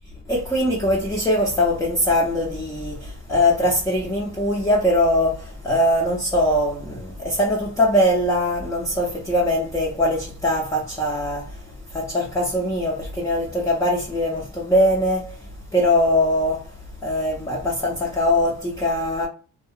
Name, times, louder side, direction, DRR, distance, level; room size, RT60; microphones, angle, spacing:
voice 1, 0.3-16.8 17.0-19.3, left 1 dB, 10° left, 0.4 m, -22 dB
2.7 x 2.1 x 2.3 m
cardioid pair, 135°, 35 cm